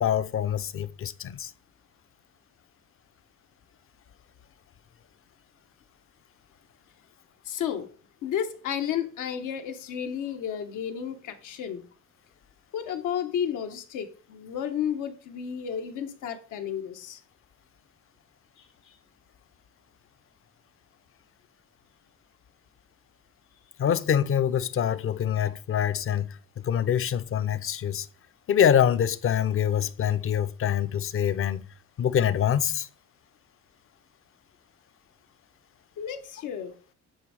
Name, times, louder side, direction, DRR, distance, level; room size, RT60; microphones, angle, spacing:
voice 1, 0.0-1.5 23.8-26.4 26.6-28.1 28.5-31.6 32.0-32.9, left 9 dB, 45° left, 0.5 m, -25 dB
voice 2, 7.4-7.9 8.2-11.8 12.7-17.2 18.6-19.0 36.0-36.7, left 9 dB, 90° left, 1.1 m, -32 dB
9.3 x 3.6 x 4.8 m
cardioid pair, 90°, 30 cm